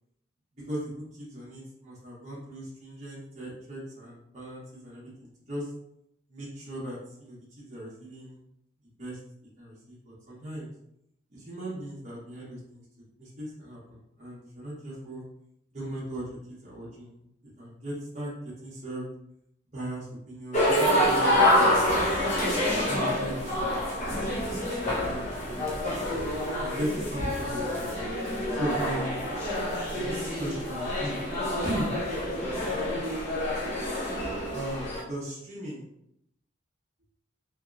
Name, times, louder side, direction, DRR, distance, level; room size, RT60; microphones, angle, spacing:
voice 1, 0.6-5.7 6.3-8.4 9.0-9.2 9.6-10.7 11.3-12.8 13.2-15.2 15.7-17.2 17.6-18.3 18.6-19.1 19.7-22.4 22.9-23.8 24.1-26.1 26.6-27.9 28.5-29.2 29.9-31.2 31.6-31.9 34.5-35.9, right 1 dB, 35° right, -7 dB, 0.8 m, -38 dB
sound 1, 20.5-35.0, left 1 dB, 35° left, 0.8 m, -27 dB
2.9 x 2.8 x 2.4 m, 0.77 s
head